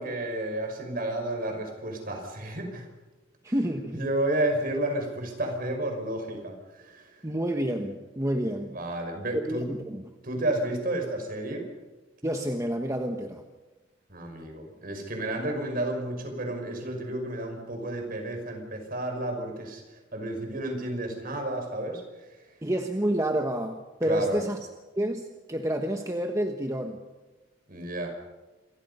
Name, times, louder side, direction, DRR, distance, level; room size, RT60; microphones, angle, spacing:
voice 1, 0.0-2.9 3.9-7.0 8.7-9.7 10.2-11.6 14.1-19.8 20.1-22.0 24.1-24.4 27.7-28.1, right 1 dB, 45° right, 4 dB, 5.6 m, -31 dB
voice 2, 3.4-4.0 7.2-8.8 9.3-10.0 12.2-13.4 22.6-24.6 25.0-27.0, right 1 dB, 15° right, 4 dB, 1.3 m, -29 dB
27.5 x 23.5 x 5.6 m, 1.2 s
head